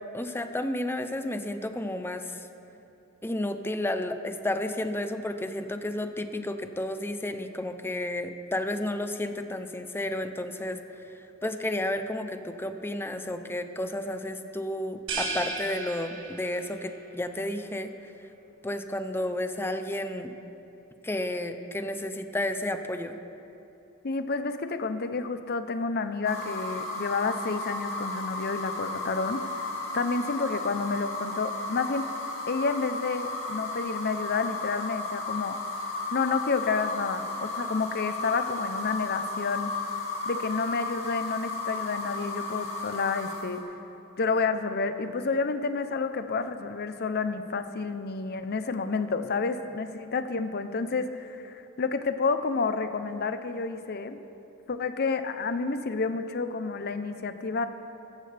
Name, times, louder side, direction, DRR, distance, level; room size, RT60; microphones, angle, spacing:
voice 1, 0.1-2.4 3.2-11.1 11.4-17.9 18.6-20.3 21.0-23.2, left 1 dB, 10° left, 8 dB, 0.6 m, -32 dB
sound 1, 15.1-16.8, right 3 dB, 65° right, 1.9 m, -34 dB
voice 2, 24.0-29.7 29.9-32.1 32.5-35.6 36.1-39.7 40.2-43.6 44.2-54.2 54.7-57.7, left 4 dB, 50° left, 10 dB, 0.7 m, -30 dB
sound 2, 26.2-43.6, left 3 dB, 80° left, 2.2 m, -34 dB
14.5 x 14.5 x 3.4 m, 2.8 s
head